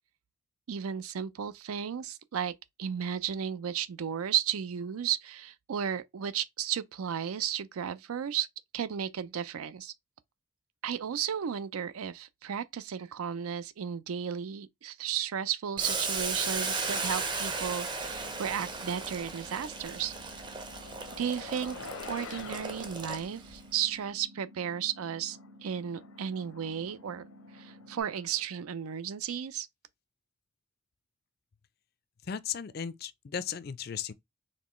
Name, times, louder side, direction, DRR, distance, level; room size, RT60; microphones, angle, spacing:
voice 1, 0.7-2.5 2.8-8.5 8.7-9.9 10.8-20.1 21.2-21.8 22.1-27.2 27.5-29.7, right 8 dB, 90° right, 0.4 m, -34 dB
Boiling, 15.8-23.6, right 4 dB, 20° right, 0.5 m, -35 dB
sound 1, 18.0-28.0, equal, 50° right, 1.4 m, -53 dB
sound 2, 20.0-23.8 24.6-24.7 25.1-28.5, left 5 dB, 80° left, 0.7 m, -49 dB
voice 2, 32.2-34.1, left 8 dB, 45° left, 0.4 m, -36 dB
4.3 x 3.1 x 3.0 m
head